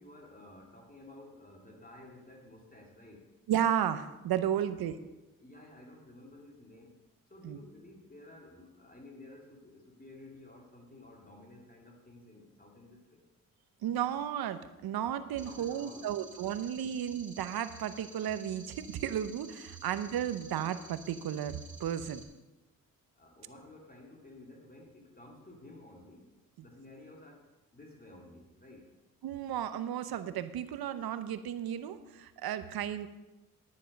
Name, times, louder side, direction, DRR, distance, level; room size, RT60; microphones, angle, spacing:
voice 1, 0.0-3.3 4.7-4.8 5.4-7.0 7.3-13.2 15.4-16.1 16.6-16.9 23.2-26.3 26.6-28.9, left 1 dB, 25° left, 0 dB, 2.3 m, -53 dB
voice 2, 3.5-4.9 7.4-7.6 13.8-22.2 29.2-33.1, right 10 dB, 80° right, 12 dB, 0.8 m, -33 dB
sound 1, 15.4-22.2, right 2 dB, 20° right, 2.3 m, -52 dB
10.5 x 9.6 x 5.2 m, 1.0 s
cardioid pair, 75°, 37 cm